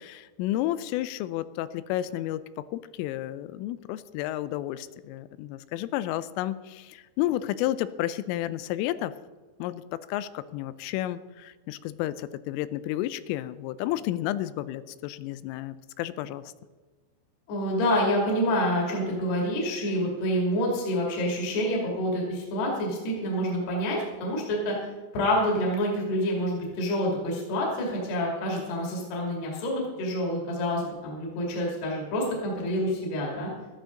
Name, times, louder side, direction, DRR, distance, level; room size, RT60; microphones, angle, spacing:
voice 1, 0.0-9.1 9.6-16.4, left 14 dB, 85° left, 15 dB, 3.1 m, -31 dB
voice 2, 17.5-24.8 25.1-33.5, equal, 55° left, -2 dB, 4.4 m, -27 dB
15.0 x 13.5 x 3.9 m, 1.3 s
omnidirectional pair, 6.0 m